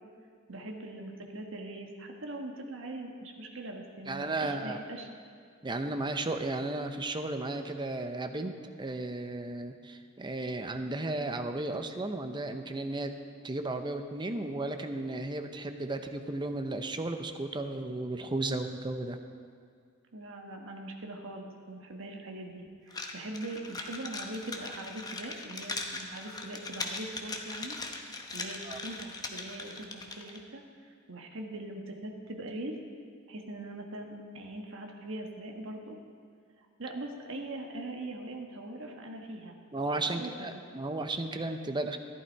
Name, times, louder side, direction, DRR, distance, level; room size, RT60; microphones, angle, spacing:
voice 1, 0.5-5.1 20.1-27.8 28.3-30.6 31.1-32.8 33.3-36.0 36.8-39.6 40.1-40.6, right 1 dB, 65° right, 2 dB, 1.4 m, -41 dB
voice 2, 4.1-4.8 5.6-13.1 13.4-19.2 28.6-28.8 39.7-42.0, right 2 dB, 20° right, 7 dB, 0.7 m, -34 dB
sound 1, 22.9-30.4, left 3 dB, 20° left, 0.9 m, -40 dB
14.0 x 11.5 x 4.6 m, 2.2 s
head